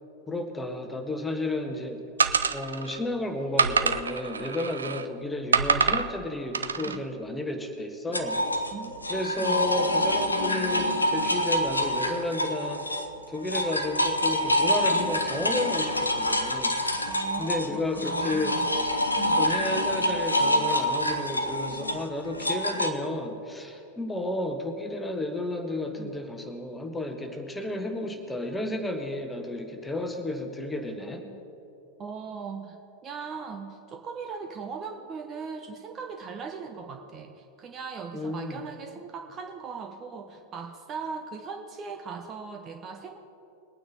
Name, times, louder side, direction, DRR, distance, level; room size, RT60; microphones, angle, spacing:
voice 1, 0.3-2.0 2.5-8.5 9.1-12.9 13.3-16.8 17.4-18.6 19.4-31.2 38.1-38.6, left 1 dB, 10° left, 5 dB, 1.4 m, -32 dB
sound 1, 2.2-3.0 3.6-5.1 5.5-6.1 6.5-7.0, right 5 dB, 75° right, 0.5 m, -25 dB
sound 2, 8.1-13.1 13.4-22.9, equal, 80° left, 0.8 m, -26 dB
voice 2, 8.7-9.1 9.4-9.6 17.1-18.7 19.1-19.4 26.0-26.1 31.0-31.4 32.0-32.8 33.0-43.2, right 5 dB, 30° right, 5 dB, 0.9 m, -39 dB
21.5 x 9.2 x 4.0 m, 2.7 s
figure-of-eight pair, 90°, 0 cm